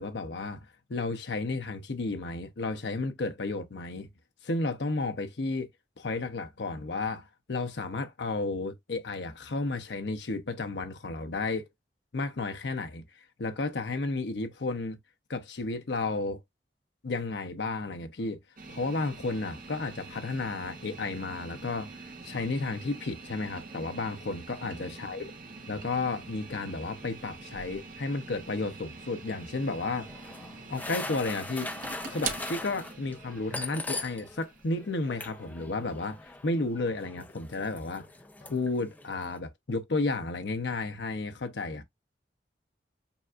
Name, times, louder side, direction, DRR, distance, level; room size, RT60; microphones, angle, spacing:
voice 1, 0.0-4.1 4.4-5.7 6.0-11.6 12.1-13.0 13.4-15.0 15.3-16.4 17.0-18.4 18.7-25.3 25.7-30.1 30.7-31.7 32.1-38.1 38.4-41.8, left 3 dB, 70° left, 0.7 m, -32 dB
sound 1, 18.6-36.7, right 4 dB, 50° right, 1.1 m, -44 dB
sound 2, 29.8-34.4 34.7-39.4, left 2 dB, 10° left, 0.5 m, -41 dB
7.0 x 2.5 x 2.4 m
head